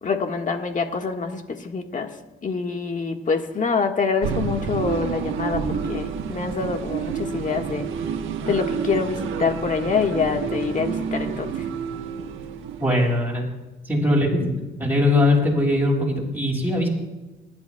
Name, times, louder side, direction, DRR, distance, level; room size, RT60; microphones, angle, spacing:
voice 1, 0.0-2.1 2.4-7.9 8.5-11.7, left 5 dB, 40° left, 4 dB, 1.7 m, -25 dB
sound 1, 4.2-13.4, right 7 dB, 85° right, 1.2 m, -29 dB
voice 2, 12.8-13.4 13.8-14.5 14.8-16.9, left 1 dB, 10° right, -3 dB, 5.8 m, -20 dB
28.0 x 11.5 x 2.3 m, 1.1 s
cardioid pair, 90°, 20 cm